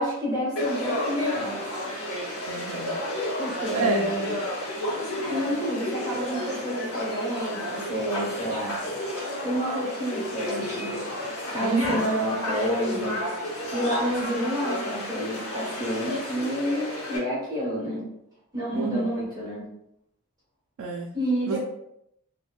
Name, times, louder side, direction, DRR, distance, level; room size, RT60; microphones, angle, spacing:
voice 1, 0.0-1.6 3.4-4.3 5.3-8.8 9.4-11.0 11.5-13.2 13.7-18.0 18.5-19.7 21.1-21.6, equal, 20° right, -8 dB, 1.3 m, -29 dB
Conversation / Crowd, 0.6-17.2, left 1 dB, 80° left, 0.9 m, -32 dB
voice 2, 2.5-2.9 3.7-4.1 11.6-12.0 14.4-14.5 18.7-19.1 20.8-21.1 21.4-21.6, right 3 dB, 85° right, 1 dB, 0.4 m, -29 dB
3.0 x 2.2 x 2.4 m, 0.78 s
head